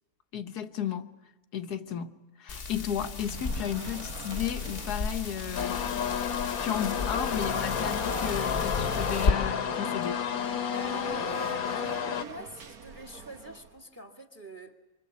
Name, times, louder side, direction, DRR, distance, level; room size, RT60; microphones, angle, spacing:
voice 1, 0.3-1.0 1.5-2.1 2.4-5.8 6.6-10.2, left 9 dB, 85° left, 1.7 m, -33 dB
sound 1, 2.5-9.3, left 4 dB, 40° left, 1.3 m, -34 dB
sound 2, 3.2-13.8, right 6 dB, 70° right, 1.7 m, -47 dB
sound 3, 5.6-12.2, left 7 dB, 70° left, 1.5 m, -31 dB
voice 2, 10.7-14.8, equal, 10° right, 1.8 m, -43 dB
25.0 x 25.0 x 8.4 m
omnidirectional pair, 1.7 m